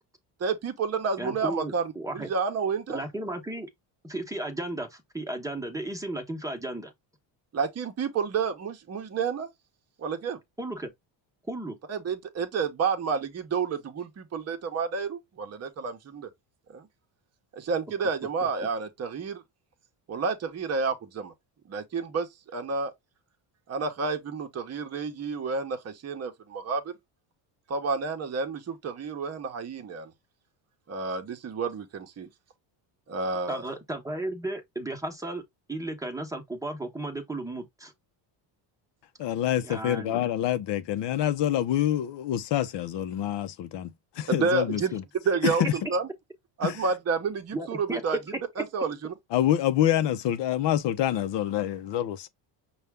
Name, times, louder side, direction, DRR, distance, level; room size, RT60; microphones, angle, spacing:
voice 1, 0.4-3.0 7.5-9.5 10.0-10.4 11.9-16.3 16.7-16.9 17.5-19.4 20.1-21.3 21.7-22.9 23.7-26.9 27.7-30.1 30.9-32.3 33.1-33.7 44.3-44.9 45.2-46.1 46.6-48.2 48.6-49.1, right 5 dB, 30° right, 0.9 m, -30 dB
voice 2, 1.2-2.3 2.9-3.7 4.0-6.9 10.6-10.9 11.5-11.8 33.5-35.4 35.7-37.9 39.6-40.2 47.5-48.0, right 2 dB, 5° right, 1.0 m, -34 dB
voice 3, 39.2-45.0 45.4-45.7 46.6-46.7 49.3-52.3, left 11 dB, 60° left, 0.7 m, -26 dB
5.5 x 2.4 x 3.3 m
cardioid pair, 110°, 49 cm